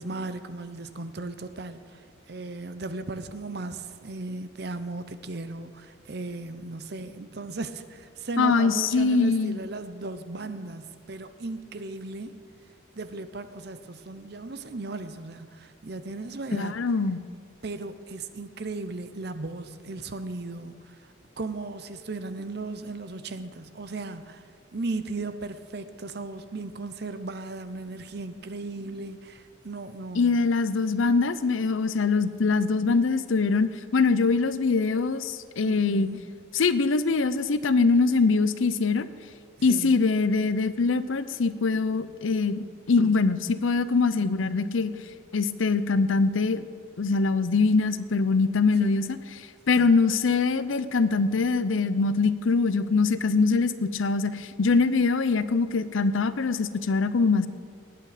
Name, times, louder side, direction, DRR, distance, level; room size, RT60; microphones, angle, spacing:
voice 1, 0.0-1.8 2.3-12.4 12.9-16.7 17.6-20.8 21.4-24.4 24.7-30.4 35.6-36.2 39.6-40.0 48.8-49.0 49.7-49.9, right 3 dB, 55° right, 11 dB, 0.7 m, -36 dB
voice 2, 8.4-9.6 16.5-17.2 30.1-36.1 36.5-39.1 39.6-44.9 45.3-46.7 47.0-49.2 49.7-57.5, left 4 dB, 85° left, 14 dB, 0.6 m, -23 dB
19.0 x 8.7 x 5.0 m, 2.1 s
head